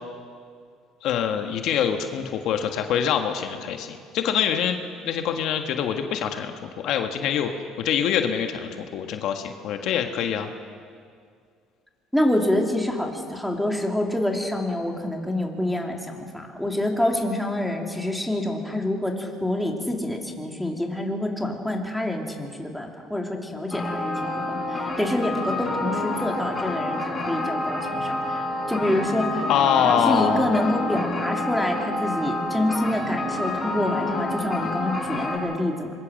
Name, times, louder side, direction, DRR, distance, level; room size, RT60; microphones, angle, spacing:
voice 1, 1.0-4.8 5.0-6.5 6.8-7.5 7.8-10.5 29.5-30.6, left 8 dB, 65° left, 5 dB, 1.6 m, -24 dB
voice 2, 12.1-28.4 28.7-29.5 29.8-35.9, left 1 dB, ahead, 1 dB, 3.3 m, -27 dB
sound 1, 23.7-35.4, left 2 dB, 20° left, 5.8 m, -28 dB
25.5 x 22.5 x 6.6 m, 2.2 s
cardioid pair, 105°, 0 cm